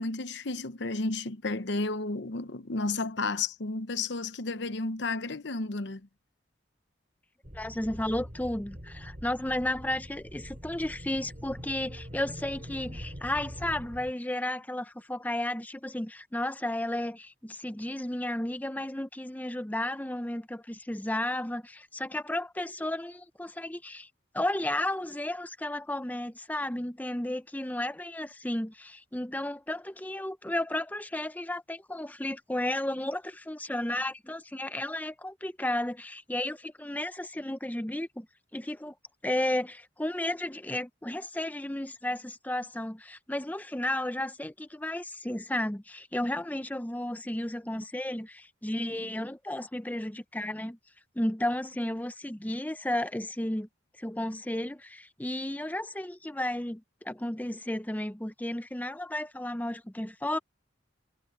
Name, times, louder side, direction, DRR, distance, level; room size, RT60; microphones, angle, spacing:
voice 1, 0.0-6.0, left 3 dB, 60° left, 0.9 m, -32 dB
sound 1, 7.4-14.1, equal, 40° right, 7.9 m, -44 dB
voice 2, 7.5-24.1 24.3-38.3 38.5-38.9 39.2-50.8 51.2-53.7 54.0-60.4, left 1 dB, 10° left, 0.6 m, -33 dB
head